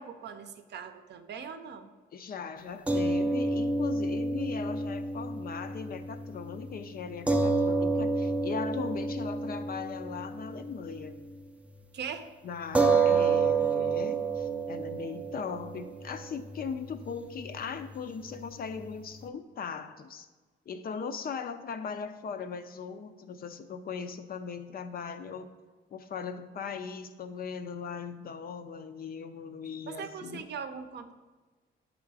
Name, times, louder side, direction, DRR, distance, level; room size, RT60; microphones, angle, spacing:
voice 1, 0.0-1.9 11.9-12.3 29.9-31.1, right 6 dB, 60° right, 8 dB, 0.6 m, -40 dB
voice 2, 2.1-11.2 12.4-20.3 20.7-25.5 25.9-30.5, left 6 dB, 50° left, 9 dB, 0.5 m, -39 dB
sound 1, 2.9-11.4 11.7-11.9 12.7-19.3, right 4 dB, 5° right, 0.4 m, -30 dB
7.5 x 3.7 x 4.7 m, 1.3 s
cardioid pair, 90°, 20 cm